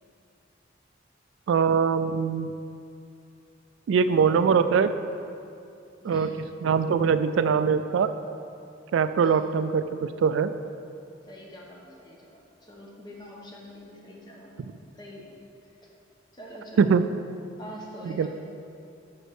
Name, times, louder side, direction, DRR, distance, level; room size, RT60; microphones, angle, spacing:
voice 1, 1.5-2.5 3.9-4.9 6.0-6.3 6.6-8.1 8.9-10.5 16.8-17.0 18.1-18.3, right 6 dB, 75° right, 11 dB, 0.3 m, -22 dB
voice 2, 6.0-6.4 9.2-9.4 11.2-14.5 15.0-15.3 16.3-17.0 17.6-18.3, equal, 25° left, -2 dB, 1.1 m, -45 dB
6.4 x 5.3 x 6.3 m, 2.6 s
head